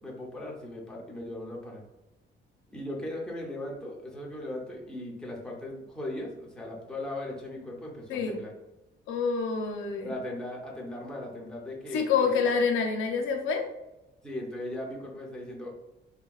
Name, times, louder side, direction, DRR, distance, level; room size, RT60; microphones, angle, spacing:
voice 1, 0.0-1.8 2.7-8.5 10.0-12.4 14.2-15.8, left 1 dB, 5° left, -3 dB, 0.6 m, -38 dB
voice 2, 9.1-10.1 11.9-13.6, left 5 dB, 85° left, 2 dB, 0.5 m, -27 dB
3.5 x 2.2 x 2.3 m, 0.99 s
cardioid pair, 135°, 20 cm